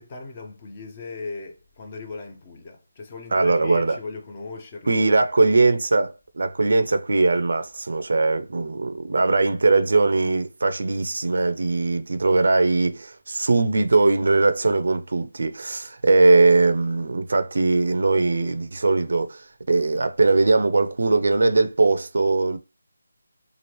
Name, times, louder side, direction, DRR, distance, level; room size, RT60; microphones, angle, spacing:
voice 1, 0.0-5.1, left 3 dB, 20° left, 0.4 m, -38 dB
voice 2, 3.3-4.0 4.9-22.6, right 3 dB, 60° right, 0.4 m, -20 dB
2.9 x 2.4 x 3.0 m
figure-of-eight pair, 175°, 0 cm